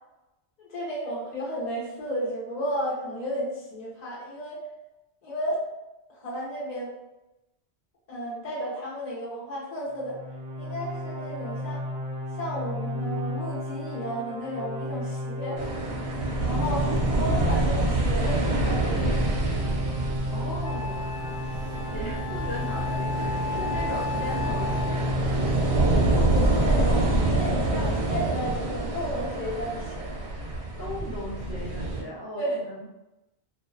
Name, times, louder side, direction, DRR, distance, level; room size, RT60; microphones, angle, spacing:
voice 1, 0.6-4.6 5.2-5.6 6.1-6.9 8.1-10.2 10.6-11.8 12.3-15.6 16.4-19.2 26.1-30.1 32.3-32.6, equal, 40° left, -6 dB, 0.9 m, -33 dB
sound 1, 9.9-26.2, left 1 dB, 60° right, 0.7 m, -33 dB
sound 2, 15.6-32.0, right 2 dB, 90° right, 0.9 m, -27 dB
Wind instrument woodwind instrument, 20.0-20.1 20.6-25.3, left 5 dB, 35° right, 0.3 m, -35 dB
voice 2, 20.3-21.1 21.4-25.4 30.4-32.9, left 1 dB, 70° left, -5 dB, 0.9 m, -38 dB
2.5 x 2.1 x 2.4 m, 0.98 s
omnidirectional pair, 1.1 m